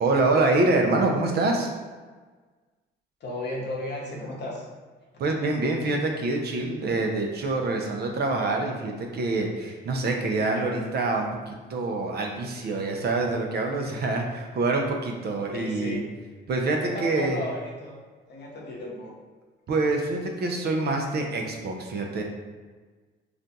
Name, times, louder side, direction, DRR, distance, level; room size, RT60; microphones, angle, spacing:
voice 1, 0.0-1.7 5.2-16.0 16.5-17.4 19.7-22.2, right 2 dB, 55° right, 2 dB, 0.5 m, -26 dB
voice 2, 3.2-4.7 15.5-16.1 16.8-18.0 18.3-19.1, left 1 dB, 60° left, -2 dB, 0.8 m, -34 dB
2.5 x 2.2 x 4.0 m, 1.4 s
cardioid pair, 90°, 20 cm